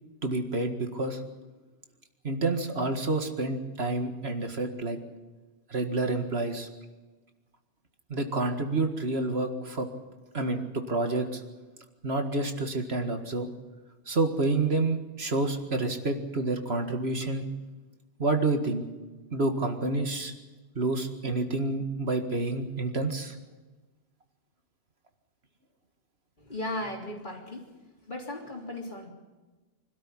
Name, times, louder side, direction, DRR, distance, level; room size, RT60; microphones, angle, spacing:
voice 1, 0.2-1.2 2.2-5.0 5.7-6.7 8.1-9.9 10.3-11.4 12.0-13.5 14.1-17.5 18.2-18.8 19.3-20.3 20.8-23.3, right 2 dB, 60° right, 6 dB, 2.1 m, -28 dB
voice 2, 26.4-27.7 28.1-29.1, left 1 dB, 40° left, 1 dB, 3.6 m, -36 dB
25.5 x 13.0 x 10.0 m, 1.2 s
omnidirectional pair, 1.2 m